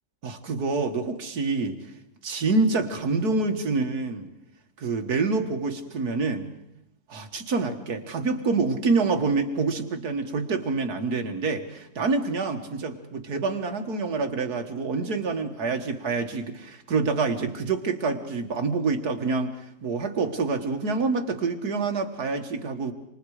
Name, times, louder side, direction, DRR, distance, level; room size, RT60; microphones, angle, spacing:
voice 1, 0.2-1.8 2.2-4.3 4.8-6.5 7.1-19.6 19.8-22.9, right 4 dB, 75° right, 5 dB, 2.3 m, -27 dB
28.0 x 26.0 x 5.0 m, 0.85 s
omnidirectional pair, 1.6 m